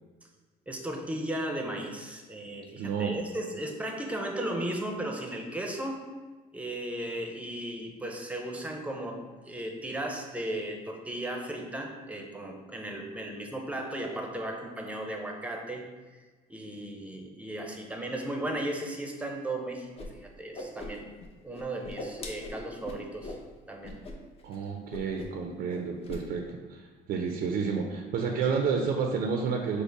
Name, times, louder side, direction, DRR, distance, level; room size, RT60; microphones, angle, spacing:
voice 1, 0.7-6.0 6.5-15.8 16.1-16.2 16.5-21.1 21.4-23.3 23.7-24.0, right 1 dB, 10° right, 2 dB, 0.6 m, -36 dB
voice 2, 2.8-3.1 24.4-26.8 27.1-29.8, right 5 dB, 65° right, 2 dB, 0.5 m, -30 dB
Whoosh swoosh swish, 20.0-20.1 20.4-21.3 21.5-23.4 23.8-24.1 24.4-24.6 24.9-25.4 25.7-26.2, left 2 dB, 35° left, 0.7 m, -41 dB
5.3 x 2.1 x 4.6 m, 1.3 s
cardioid pair, 110°, 17 cm